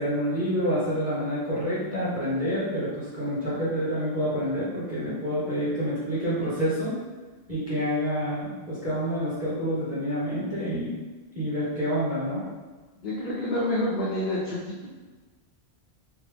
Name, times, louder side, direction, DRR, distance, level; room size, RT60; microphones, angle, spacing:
voice 1, 0.0-6.9 7.5-11.0 11.3-12.4, equal, 15° right, -9 dB, 0.9 m, -28 dB
voice 2, 13.0-14.9, left 1 dB, 55° left, -6 dB, 0.6 m, -28 dB
3.3 x 2.1 x 3.3 m, 1.3 s
omnidirectional pair, 1.1 m